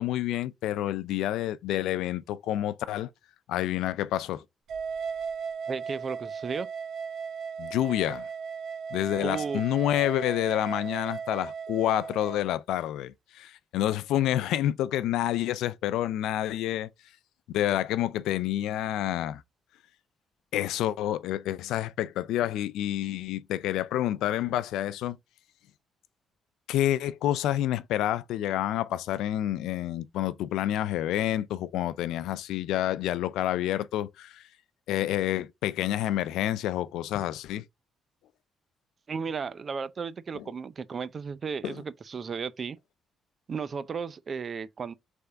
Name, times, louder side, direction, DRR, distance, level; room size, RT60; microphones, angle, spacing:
voice 1, 0.0-3.1 3.5-4.4 7.6-8.3 8.9-16.9 17.5-19.4 20.5-25.2 26.7-34.4 34.9-37.6 40.3-40.4 41.6-41.8, left 12 dB, 90° left, 0.3 m, -28 dB
sound 1, 4.7-12.4, right 6 dB, 70° right, 0.9 m, -36 dB
voice 2, 5.7-6.7 9.2-9.6 39.1-42.8 43.5-44.9, right 5 dB, 45° right, 0.5 m, -34 dB
3.5 x 3.4 x 3.9 m
cardioid pair, 90°, 0 cm